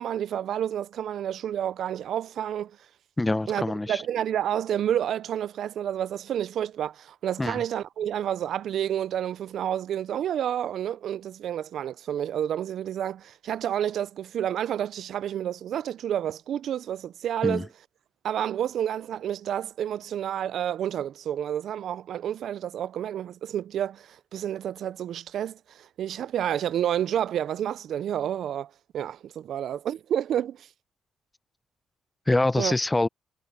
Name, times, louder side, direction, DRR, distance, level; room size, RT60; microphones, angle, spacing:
voice 1, 0.0-2.8 3.5-17.7 18.2-30.7 32.6-32.8, right 10 dB, 70° right, 0.4 m, -30 dB
voice 2, 3.2-4.0 7.4-7.6 17.4-17.6 32.3-33.1, left 2 dB, 15° left, 0.6 m, -25 dB
cardioid pair, 75°, 0 cm